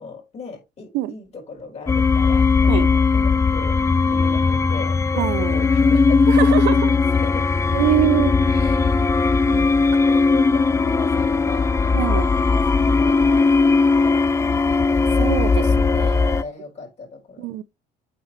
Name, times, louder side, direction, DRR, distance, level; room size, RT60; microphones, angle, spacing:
voice 1, 0.0-3.8 4.0-7.5 8.5-8.8 10.1-14.2 15.6-17.5, left 4 dB, 40° left, 4.5 m, -38 dB
sound 1, 1.9-16.4, left 4 dB, 15° left, 0.3 m, -18 dB
voice 2, 5.2-5.7 6.3-6.9 7.7-8.9 9.5-9.7 10.0-10.1 11.9-12.3 15.2-16.4 17.4-17.6, right 15 dB, 85° right, 0.5 m, -24 dB
8.5 x 4.3 x 3.1 m
cardioid pair, 110°, 17 cm